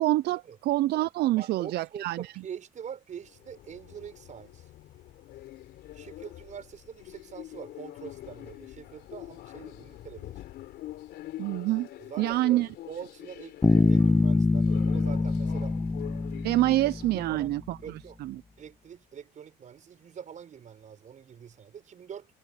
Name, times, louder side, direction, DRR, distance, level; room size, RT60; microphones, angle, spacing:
voice 1, 0.0-2.3 11.4-11.9 12.2-12.7 16.4-17.8 18.2-18.4, right 16 dB, 70° right, 0.5 m, -26 dB
voice 2, 1.4-4.7 5.9-10.4 12.0-16.2 17.1-17.5 17.8-18.2 18.6-22.3, right 8 dB, 45° right, 5.8 m, -44 dB
sound 1, 3.1-17.3, left 14 dB, 75° left, 4.1 m, -45 dB
Bass guitar, 13.6-17.3, left 3 dB, 15° left, 0.6 m, -24 dB
cardioid pair, 110°, 17 cm